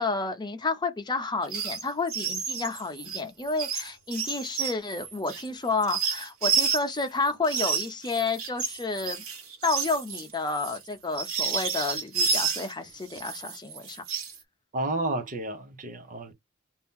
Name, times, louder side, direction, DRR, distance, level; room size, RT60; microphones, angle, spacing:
voice 1, 0.0-9.2 9.6-14.0, left 3 dB, 20° left, 0.7 m, -30 dB
sound 1, 1.4-1.8 2.1-7.0 7.4-12.7 13.1-14.4, right 5 dB, 80° right, 1.1 m, -30 dB
voice 2, 14.7-16.3, right 2 dB, 40° right, 0.8 m, -31 dB
2.9 x 2.7 x 3.6 m
head